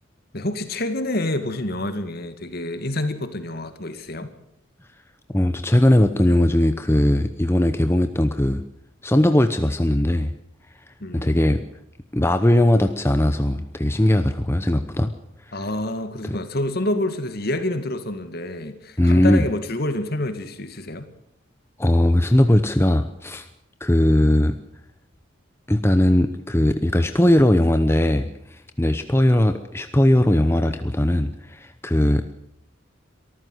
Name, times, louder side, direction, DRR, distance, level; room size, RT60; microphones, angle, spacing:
voice 1, 0.3-4.3 11.0-11.6 15.5-21.1, left 1 dB, 50° left, 2.1 m, -28 dB
voice 2, 5.3-8.6 9.0-10.3 11.1-11.6 12.1-15.1 15.5-15.6 16.2-16.4 19.0-19.4 21.8-23.5 23.8-24.5 25.7-32.3, left 1 dB, 10° left, 0.8 m, -19 dB
24.0 x 14.0 x 8.0 m
head